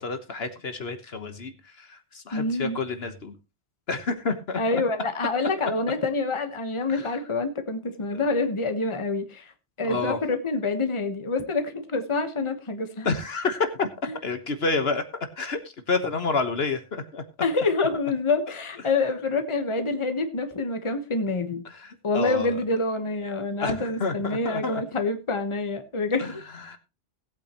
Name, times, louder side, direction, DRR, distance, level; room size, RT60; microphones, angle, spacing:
voice 1, 0.0-1.5 1.8-3.4 3.9-4.6 6.9-7.0 8.1-8.2 9.8-10.2 13.0-13.9 14.2-15.0 15.4-15.6 15.9-17.2 21.7-22.5 23.6-24.8 26.2-26.3 26.7-26.8, left 4 dB, 60° left, 8 dB, 1.5 m, -29 dB
voice 2, 2.3-2.8 4.6-9.5 9.8-13.1 14.0-14.2 17.4-21.6 22.0-26.4, left 3 dB, 25° left, 8 dB, 1.2 m, -27 dB
18.5 x 8.7 x 3.0 m, 0.26 s
omnidirectional pair, 1.2 m